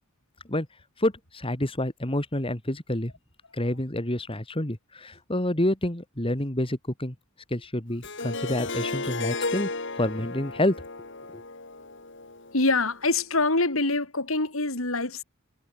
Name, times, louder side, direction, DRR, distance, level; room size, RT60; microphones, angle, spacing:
voice 1, 1.0-3.1 3.5-7.1 7.5-9.7 10.0-10.8 11.3-11.4, left 1 dB, 25° left, 2.8 m, -28 dB
Harp, 8.0-13.0, left 3 dB, 60° left, 5.2 m, -34 dB
voice 2, 12.5-15.2, left 3 dB, 80° left, 3.9 m, -25 dB
head